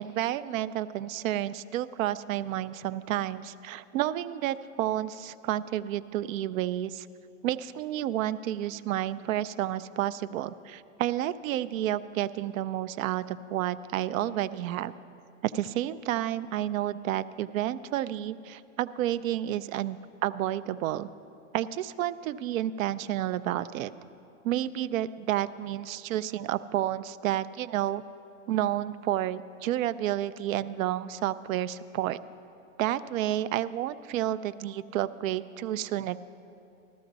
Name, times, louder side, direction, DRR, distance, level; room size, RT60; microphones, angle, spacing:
voice 1, 0.0-7.1 7.4-14.9 15.4-21.1 21.5-23.9 24.4-28.0 28.5-32.2 32.8-36.2, right 12 dB, 85° right, 14 dB, 0.5 m, -30 dB
13.5 x 13.5 x 4.0 m, 2.6 s
supercardioid pair, 160°, 40 cm